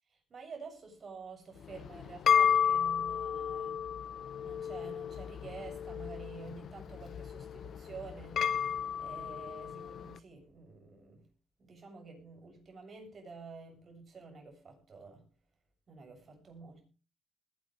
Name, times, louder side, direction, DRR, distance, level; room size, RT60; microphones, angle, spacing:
voice 1, 0.3-3.9 4.4-8.4 9.0-11.3 11.6-15.3 15.9-16.8, right 4 dB, 45° right, 7.5 m, -49 dB
sound 1, 1.6-10.1, left 8 dB, 60° left, 0.7 m, -32 dB
20.5 x 11.0 x 3.3 m
cardioid pair, 90°, 0 cm